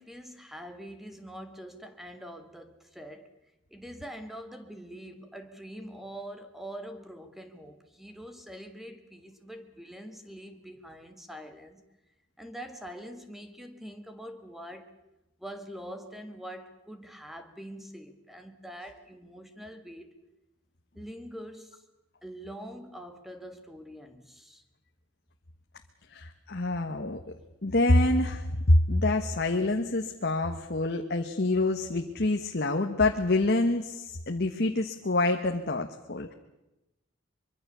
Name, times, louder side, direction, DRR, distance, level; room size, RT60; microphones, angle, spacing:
voice 1, 0.0-3.3 3.7-11.8 12.4-15.0 15.4-20.2 20.9-21.8 22.2-24.6, equal, ahead, 1.7 m, -44 dB
voice 2, 26.1-27.2 27.6-36.3, left 2 dB, 55° left, 1.3 m, -26 dB
24.0 x 23.5 x 6.9 m
head